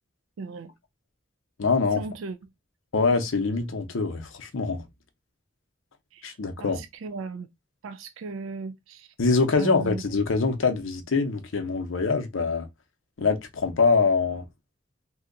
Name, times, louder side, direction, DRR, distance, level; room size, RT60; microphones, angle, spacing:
voice 1, 0.4-0.7 2.0-2.4 6.1-7.5 7.8-9.1 9.5-10.0, right 4 dB, 85° right, 0.3 m, -36 dB
voice 2, 1.6-2.0 2.9-4.8 6.2-6.8 9.2-12.7 13.2-14.5, left 4 dB, 90° left, 0.7 m, -24 dB
2.7 x 2.2 x 3.7 m
head